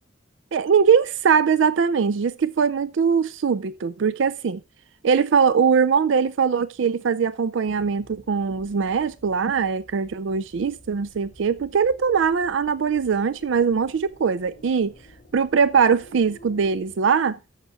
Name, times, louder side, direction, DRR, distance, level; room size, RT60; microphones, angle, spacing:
voice 1, 0.5-4.6 5.0-14.9 15.3-17.4, right 6 dB, 70° right, 0.4 m, -21 dB
sound 1, 7.7-16.9, left 1 dB, 35° left, 2.0 m, -51 dB
14.5 x 5.9 x 3.5 m
head